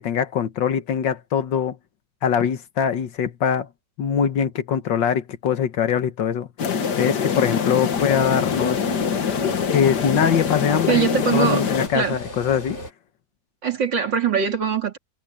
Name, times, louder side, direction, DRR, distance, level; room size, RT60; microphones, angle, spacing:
voice 1, 0.0-1.8 2.2-3.7 4.0-6.5 7.0-8.8 9.7-11.1 11.3-12.8, left 8 dB, 80° left, 1.9 m, -22 dB
sound 1, 6.6-11.9, left 6 dB, 65° left, 2.0 m, -24 dB
sound 2, 7.9-12.9, left 1 dB, 35° left, 3.5 m, -39 dB
voice 2, 10.9-11.6 11.9-12.2 13.6-15.0, right 6 dB, 75° right, 3.5 m, -22 dB
omnidirectional pair, 2.0 m